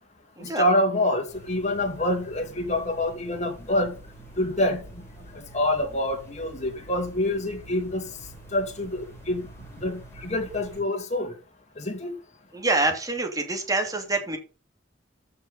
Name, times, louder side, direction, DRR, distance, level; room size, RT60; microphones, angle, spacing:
voice 1, 0.4-3.9 4.4-4.8 5.3-8.1 8.5-9.4 9.8-11.3 11.8-12.1, left 1 dB, 40° left, 2.5 m, -26 dB
sound 1, 1.3-10.8, right 2 dB, 15° left, 7.0 m, -47 dB
voice 2, 12.5-14.4, right 2 dB, 20° right, 2.8 m, -26 dB
14.0 x 5.9 x 5.4 m
head